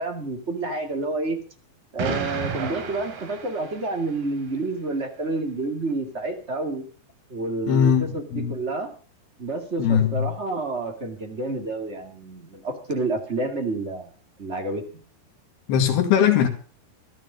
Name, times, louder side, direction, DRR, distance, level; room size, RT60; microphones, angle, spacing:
voice 1, 0.0-1.4 1.9-6.8 7.3-8.9 9.4-14.1 14.4-15.0, right 2 dB, 25° right, 1.7 m, -29 dB
Explosion, 2.0-4.2, right 5 dB, 80° right, 4.2 m, -32 dB
voice 2, 7.7-8.6 9.8-10.3 15.7-16.5, left 8 dB, 90° left, 3.7 m, -20 dB
14.0 x 13.0 x 5.2 m
omnidirectional pair, 4.5 m